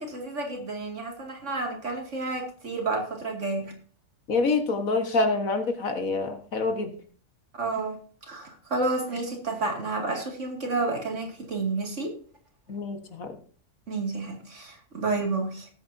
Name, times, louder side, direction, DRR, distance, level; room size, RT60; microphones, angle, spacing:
voice 1, 0.0-3.7 7.5-8.0 8.2-12.1 13.9-15.7, right 3 dB, 60° right, 1 dB, 2.9 m, -30 dB
voice 2, 4.3-6.9 12.7-13.3, left 3 dB, 85° left, 6 dB, 2.0 m, -26 dB
18.5 x 8.6 x 2.7 m, 0.43 s
omnidirectional pair, 1.4 m